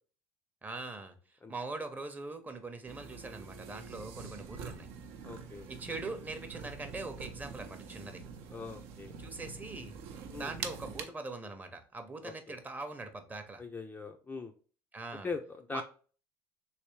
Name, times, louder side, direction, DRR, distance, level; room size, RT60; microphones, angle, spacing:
voice 1, 0.6-4.9 5.7-8.2 9.2-9.9 10.3-13.6 14.9-15.3 15.7-15.8, right 3 dB, 15° right, 6 dB, 0.7 m, -42 dB
sound 1, 2.8-11.0, right 6 dB, 75° right, 0.6 m, -45 dB
voice 2, 5.2-5.7 8.5-9.1 10.3-10.5 12.2-12.6 13.6-14.5 15.2-15.8, left 4 dB, 15° left, 4 dB, 0.4 m, -41 dB
3.2 x 3.1 x 3.0 m, 0.39 s
supercardioid pair, 105°, 10 cm